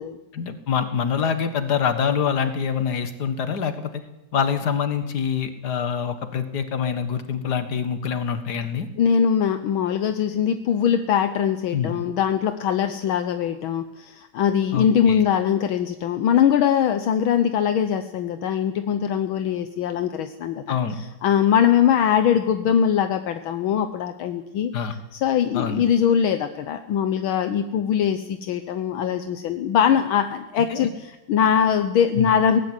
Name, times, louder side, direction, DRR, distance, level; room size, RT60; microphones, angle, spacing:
voice 1, 0.3-4.0 4.3-8.9 11.7-12.0 14.7-15.2 20.7-21.0 24.7-25.0 25.5-25.8 30.5-30.9 32.2-32.3, left 7 dB, 50° left, 9 dB, 2.1 m, -25 dB
voice 2, 9.0-20.8 21.2-24.7 25.1-32.6, left 8 dB, 75° left, 9 dB, 1.7 m, -22 dB
18.5 x 15.0 x 9.8 m, 0.97 s
omnidirectional pair, 2.3 m